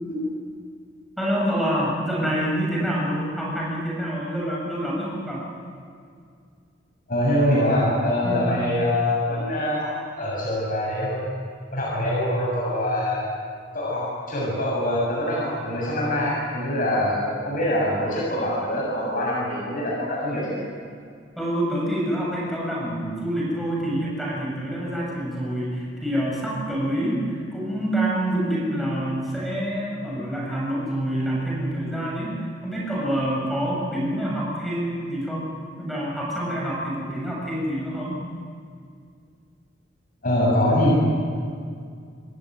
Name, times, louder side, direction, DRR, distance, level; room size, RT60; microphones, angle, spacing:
voice 1, 1.2-5.5 8.2-8.5 21.4-35.5 35.8-38.2, right 1 dB, ahead, -4 dB, 7.6 m, -27 dB
voice 2, 7.1-9.9 10.2-11.2 11.7-13.3 13.7-20.6 40.2-40.9, left 1 dB, 50° left, -4 dB, 7.3 m, -24 dB
26.5 x 18.0 x 9.5 m, 2.2 s
head